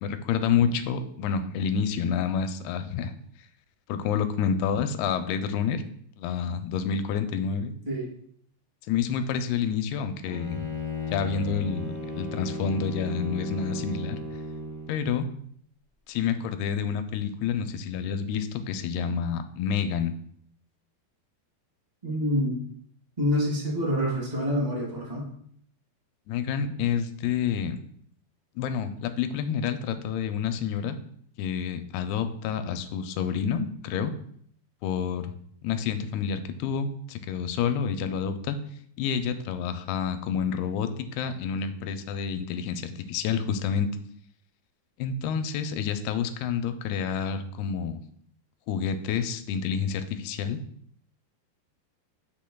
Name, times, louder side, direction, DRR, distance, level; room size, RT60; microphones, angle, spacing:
voice 1, 0.0-3.1 3.9-5.8 6.2-7.7 8.9-10.7 11.1-14.2 14.9-15.3 16.1-20.1 26.3-27.8 28.6-31.0 31.4-34.1 34.8-35.3 35.6-38.6 39.0-43.9 45.0-48.0 48.7-50.6, left 7 dB, 90° left, 9 dB, 2.6 m, -28 dB
Bowed string instrument, 10.2-15.0, left 2 dB, 70° left, 0.8 m, -35 dB
voice 2, 22.0-22.6 23.2-25.2, equal, 90° right, -4 dB, 0.3 m, -27 dB
8.4 x 5.8 x 2.3 m, 0.64 s
omnidirectional pair, 4.5 m